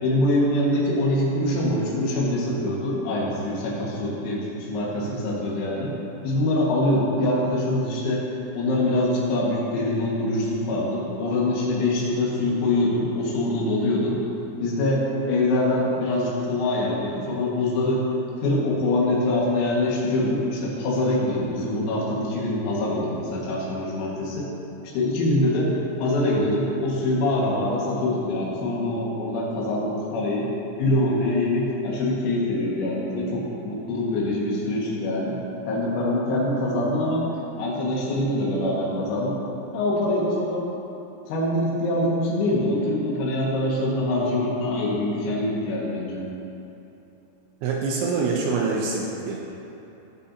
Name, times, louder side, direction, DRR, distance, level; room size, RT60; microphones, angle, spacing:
voice 1, 0.0-5.9 6.2-8.2 8.5-14.2 14.6-18.0 18.4-24.5 24.8-25.7 26.0-30.5 30.8-35.4 35.7-37.2 37.6-39.3 39.7-40.7 41.3-46.2, left 1 dB, 90° left, -5 dB, 4.5 m, -24 dB
voice 2, 47.6-49.4, right 4 dB, 80° right, -2 dB, 2.8 m, -25 dB
18.0 x 7.1 x 2.8 m, 3.0 s
omnidirectional pair, 5.9 m